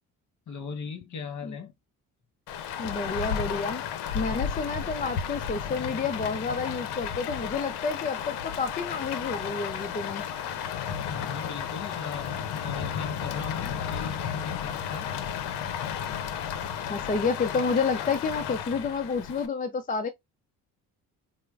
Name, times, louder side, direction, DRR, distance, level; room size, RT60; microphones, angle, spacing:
voice 1, 0.5-1.7 10.8-15.1, left 5 dB, 45° left, 1.2 m, -38 dB
Rain, 2.5-19.5, left 8 dB, 80° left, 0.7 m, -33 dB
voice 2, 2.8-3.8 4.1-10.2 16.9-20.1, left 4 dB, 20° left, 0.4 m, -30 dB
4.3 x 2.1 x 2.4 m
supercardioid pair, 70°, 39 cm